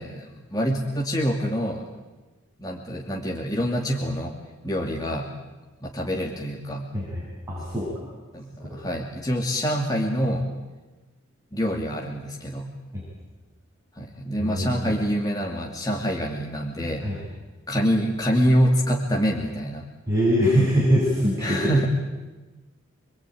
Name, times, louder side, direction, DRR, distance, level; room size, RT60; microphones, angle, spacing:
voice 1, 0.0-1.8 2.6-4.3 4.6-5.3 5.8-6.9 8.3-10.5 11.5-12.7 14.0-17.0 17.7-19.8 21.4-21.9, equal, 20° left, 0 dB, 2.5 m, -25 dB
voice 2, 6.9-8.1 8.6-8.8 12.9-13.0 14.4-14.9 17.0-17.2 20.1-21.9, equal, 15° right, -7 dB, 8.0 m, -23 dB
27.0 x 22.0 x 9.3 m, 1.2 s
head